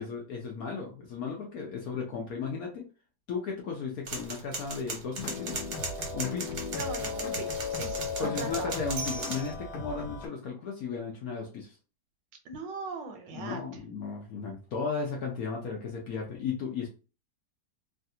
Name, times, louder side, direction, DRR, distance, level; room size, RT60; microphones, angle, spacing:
voice 1, 0.0-2.9 3.3-5.6 6.1-6.5 8.2-11.8 13.3-16.9, left 5 dB, 70° left, 0 dB, 0.9 m, -35 dB
sound 1, 4.1-9.5, right 3 dB, 50° right, 0.9 m, -38 dB
sound 2, 5.2-10.3, left 5 dB, 85° left, 1.3 m, -36 dB
voice 2, 6.7-8.9 12.4-13.6, right 4 dB, 80° right, 5 dB, 1.4 m, -39 dB
3.2 x 2.4 x 2.7 m, 0.34 s
omnidirectional pair, 2.0 m